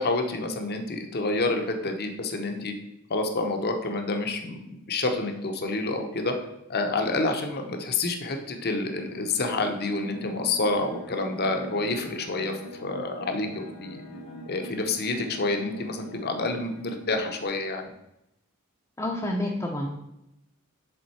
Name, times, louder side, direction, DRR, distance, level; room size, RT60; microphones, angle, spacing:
voice 1, 0.0-2.7 3.1-6.3 6.7-14.0 14.5-17.9, left 2 dB, 50° left, 5 dB, 0.8 m, -28 dB
sound 1, 8.3-17.5, equal, 80° left, 1.1 m, -44 dB
voice 2, 19.0-19.9, left 1 dB, 15° left, -1 dB, 0.6 m, -28 dB
7.7 x 3.7 x 4.3 m, 0.84 s
head